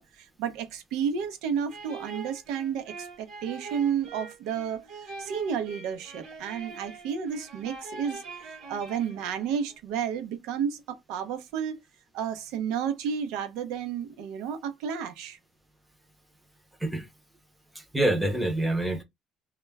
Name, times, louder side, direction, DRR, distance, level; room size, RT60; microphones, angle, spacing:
voice 1, 0.0-8.2 8.7-11.8 12.1-15.4, right 7 dB, 90° right, 0.6 m, -32 dB
sound 1, 1.7-9.7, right 4 dB, 60° right, 0.8 m, -43 dB
voice 2, 17.7-19.0, right 1 dB, 5° right, 0.5 m, -26 dB
2.2 x 2.1 x 3.3 m
cardioid pair, 180°, 0 cm